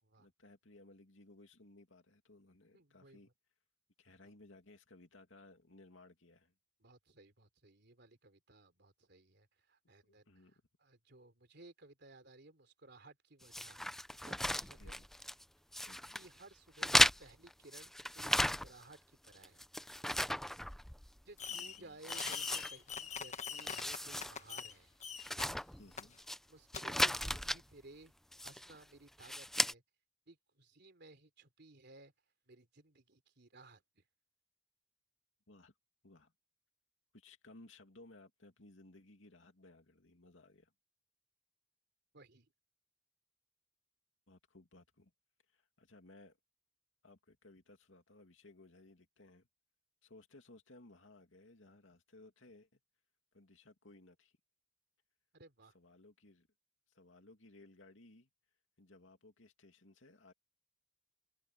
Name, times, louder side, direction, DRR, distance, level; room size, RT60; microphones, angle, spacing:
voice 1, 0.2-3.3 4.0-6.5 10.3-10.5 14.8-15.1 15.8-16.2 21.5-22.0 25.8-26.2 35.5-35.7 36.0-36.3 37.1-40.7 44.3-45.1 45.5-46.4 47.0-49.5 50.0-52.7 53.3-54.3 55.7-56.5 56.9-58.3 58.8-60.3, left 2 dB, 85° left, 2.5 m, -60 dB
voice 2, 2.7-3.2 6.8-13.8 14.1-15.0 16.1-19.7 21.2-24.9 26.5-28.1 28.4-29.8 30.3-32.1 32.5-34.0 42.1-42.5 55.3-55.7, right 2 dB, 60° right, 3.4 m, -59 dB
sound 1, 13.5-15.4 15.7-16.3 16.8-18.9 19.3-21.2 21.5-21.6 22.0-23.2 23.5-24.3 24.7-24.8 25.2-26.4 26.7-27.6 28.3-28.8 29.2-29.7, left 1 dB, ahead, 0.5 m, -35 dB
Fireworks, 21.4-21.8 22.1-24.7 25.0-25.4 26.0-26.1 26.7-26.8, left 7 dB, 40° left, 1.2 m, -43 dB
head